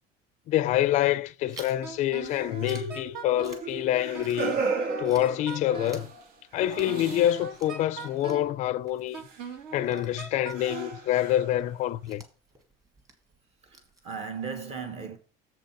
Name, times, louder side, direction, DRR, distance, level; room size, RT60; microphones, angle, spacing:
voice 1, 0.5-4.6 5.0-6.1 6.5-9.2 9.7-12.2, left 13 dB, 45° left, 0.4 m, -26 dB
Chewing mastication, 1.5-4.7 5.0-14.5, right 3 dB, 20° right, 1.7 m, -53 dB
Wind instrument woodwind instrument, 1.8-3.7 4.1-6.1 6.6-8.6 9.1-11.0, right 5 dB, 65° right, 1.8 m, -40 dB
sound 1, 2.2-7.7 8.0-8.2 9.3-9.4 10.0-10.2 10.5-11.9, right 4 dB, 85° right, 1.7 m, -36 dB
voice 2, 13.6-15.2, right 6 dB, 40° right, 1.3 m, -37 dB
7.4 x 5.2 x 5.9 m
cardioid pair, 165°, 17 cm